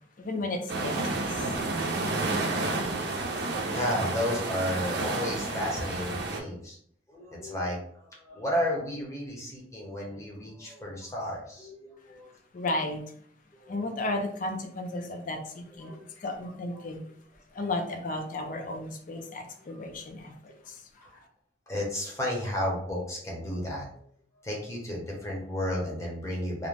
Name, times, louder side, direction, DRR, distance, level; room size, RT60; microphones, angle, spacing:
voice 1, 0.2-1.6 12.5-13.0 13.7-17.0 17.5-20.8, left 2 dB, 45° left, 4 dB, 0.4 m, -34 dB
sound 1, 0.7-6.4, right 2 dB, 65° right, 0.5 m, -30 dB
voice 2, 3.7-6.8 7.1-12.3 13.6-13.8 15.7-16.0 19.7-19.8 21.0-21.2 21.7-24.0 24.4-26.7, left 1 dB, 15° left, -3 dB, 0.7 m, -33 dB
2.5 x 2.1 x 3.2 m, 0.62 s
head